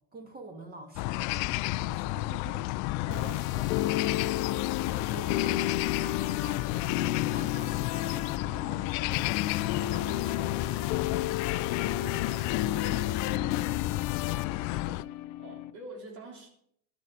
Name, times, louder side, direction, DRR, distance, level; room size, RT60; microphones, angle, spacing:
voice 1, 0.1-2.2 4.8-10.7 12.1-12.3 12.6-13.8, right 2 dB, 25° right, 5 dB, 2.5 m, -48 dB
sound 1, 1.0-15.0, left 19 dB, 50° left, 0.4 m, -32 dB
voice 2, 2.1-2.7 3.0-4.0 11.2-12.7 14.4-15.1 15.4-16.5, right 3 dB, 65° right, 2 dB, 3.5 m, -47 dB
sound 2, 2.9-15.7, left 13 dB, 65° left, 0.8 m, -32 dB
11.5 x 8.3 x 6.7 m, 0.71 s
supercardioid pair, 105°, 39 cm